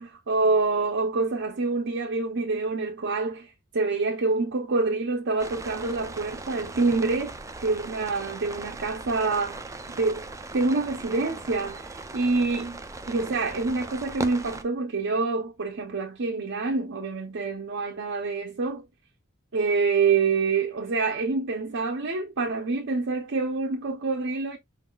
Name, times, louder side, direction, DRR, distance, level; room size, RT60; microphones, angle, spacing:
voice 1, 0.0-10.3 10.5-12.8 13.1-18.8 19.5-24.6, right 3 dB, 55° right, 0.6 m, -26 dB
sound 1, 5.4-14.6, right 3 dB, 15° right, 0.4 m, -39 dB
4.8 x 3.8 x 2.3 m
head